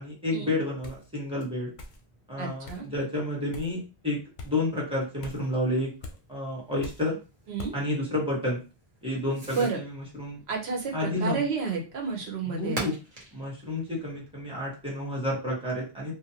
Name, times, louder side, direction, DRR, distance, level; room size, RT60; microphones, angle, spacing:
voice 1, 0.0-1.7 2.3-5.9 6.3-7.2 7.7-8.6 9.0-10.4 10.9-11.4 12.5-12.9 13.3-16.1, left 1 dB, 5° right, -5 dB, 1.2 m, -30 dB
Fireworks, 0.7-15.3, right 1 dB, 45° right, 0.9 m, -47 dB
sound 1, 0.8-1.1 1.8-2.0 2.6-2.8 3.5-3.8 4.4-4.5 5.2-5.5 6.0-6.2 6.8-7.1 7.6-7.8, left 2 dB, 55° left, 0.6 m, -41 dB
voice 2, 2.4-2.9 7.5-7.7 9.5-9.8 10.5-12.8, right 5 dB, 85° right, 1 dB, 1.0 m, -31 dB
2.6 x 2.2 x 2.8 m, 0.31 s
omnidirectional pair, 1.0 m